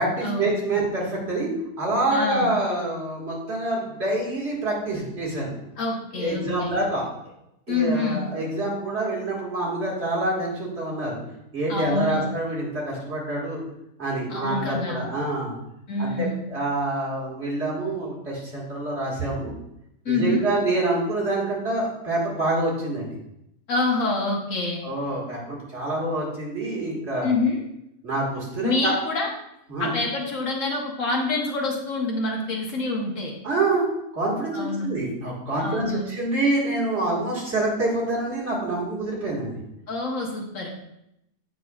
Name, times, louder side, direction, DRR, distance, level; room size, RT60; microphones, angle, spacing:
voice 1, 0.0-5.5 6.2-7.1 7.7-11.2 11.5-13.6 14.0-15.5 16.0-19.5 20.1-23.1 24.8-27.3 28.0-28.9 29.7-29.9 33.4-33.8 34.1-39.6, right 2 dB, 50° right, -5 dB, 2.1 m, -26 dB
voice 2, 2.1-2.5 5.8-6.7 7.7-8.3 11.7-12.2 14.3-15.0 15.9-16.4 20.0-20.5 23.7-24.8 27.2-27.6 28.6-29.3 29.8-33.3 34.5-34.9 35.6-36.0 39.9-40.7, left 2 dB, 65° left, 0 dB, 1.3 m, -26 dB
7.9 x 5.9 x 2.3 m, 0.82 s
omnidirectional pair, 1.5 m